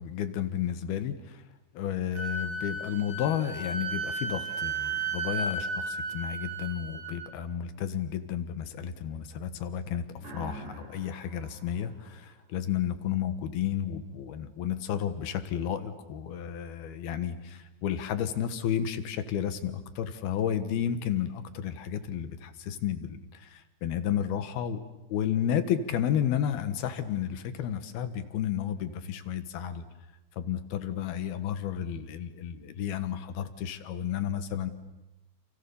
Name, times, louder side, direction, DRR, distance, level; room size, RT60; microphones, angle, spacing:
voice 1, 0.0-1.4 1.7-24.8 25.1-29.8 30.3-34.7, left 9 dB, 65° left, 10 dB, 3.0 m, -32 dB
Wind instrument woodwind instrument, 2.1-7.3, right 3 dB, 90° right, 6.6 m, -34 dB
sound 1, 10.2-12.9, right 3 dB, 60° right, 6.0 m, -47 dB
29.0 x 28.5 x 7.1 m, 1.0 s
omnidirectional pair, 5.3 m